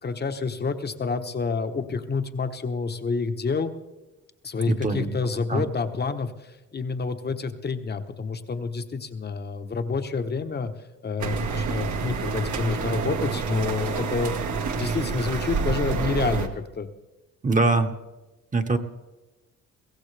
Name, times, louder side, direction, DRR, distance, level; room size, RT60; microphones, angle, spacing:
voice 1, 0.0-3.7 4.4-10.7 11.0-16.9, left 4 dB, 35° left, 8 dB, 1.1 m, -28 dB
voice 2, 4.7-5.1 5.5-5.6 17.4-17.9 18.5-18.8, right 3 dB, 25° right, 6 dB, 1.2 m, -22 dB
sound 1, 11.2-16.5, right 5 dB, 75° right, 1.7 m, -28 dB
22.5 x 16.0 x 3.4 m, 1.1 s
cardioid pair, 90°, 30 cm